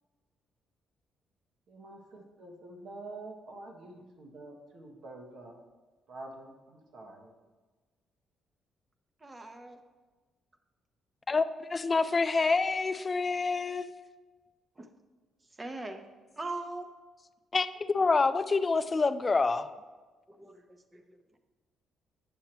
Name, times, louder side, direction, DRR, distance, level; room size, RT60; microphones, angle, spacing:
voice 1, 1.7-5.6 6.1-7.3, right 2 dB, 70° right, 1 dB, 1.4 m, -47 dB
voice 2, 9.2-9.8 14.8-14.9 15.5-16.0 16.4-16.9 20.3-21.4, right 2 dB, 25° right, 6 dB, 0.9 m, -41 dB
voice 3, 11.3-13.9 17.5-19.7, left 4 dB, 30° left, 11 dB, 0.4 m, -27 dB
9.3 x 6.4 x 3.0 m, 1.3 s
cardioid pair, 90°, 0 cm